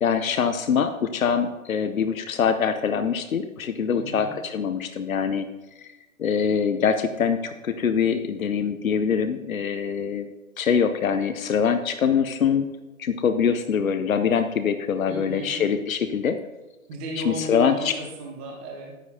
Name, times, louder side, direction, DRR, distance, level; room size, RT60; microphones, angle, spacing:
voice 1, 0.0-5.5 5.8-5.9 6.2-10.3 10.6-12.7 13.0-16.4 17.2-18.0, left 7 dB, 70° left, 9 dB, 0.7 m, -24 dB
voice 2, 3.9-4.3 15.1-15.6 16.9-19.0, right 1 dB, 10° right, -1 dB, 0.6 m, -34 dB
11.0 x 10.0 x 2.8 m, 1.1 s
figure-of-eight pair, 135°, 43 cm